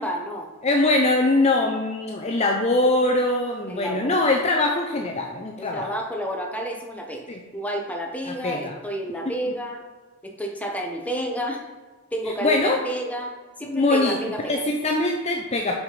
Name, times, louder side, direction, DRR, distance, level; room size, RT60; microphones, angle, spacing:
voice 1, 0.0-0.5 3.7-4.2 5.6-7.3 7.5-9.8 10.2-11.6 12.1-13.3 13.6-14.6, equal, 5° left, 1 dB, 1.0 m, -30 dB
voice 2, 0.6-5.9 7.3-7.4 8.3-8.7 9.3-9.4 12.4-12.8 13.7-14.2 14.5-15.8, left 2 dB, 30° left, 1 dB, 0.6 m, -22 dB
6.2 x 5.4 x 5.0 m, 1.3 s
head